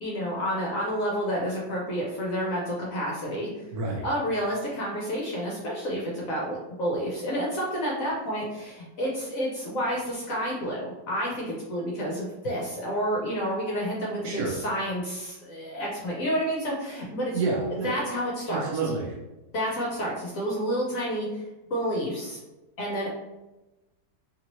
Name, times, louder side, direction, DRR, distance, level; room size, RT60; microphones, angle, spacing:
voice 1, 0.0-3.5 4.0-17.4 17.8-18.6 19.5-21.4 21.7-22.4 22.8-23.1, equal, 60° left, -3 dB, 0.9 m, -29 dB
voice 2, 3.7-4.1 14.2-14.6 17.3-17.9 18.5-19.2, right 3 dB, 70° right, -2 dB, 1.0 m, -29 dB
2.9 x 2.8 x 2.9 m, 1.0 s
omnidirectional pair, 1.9 m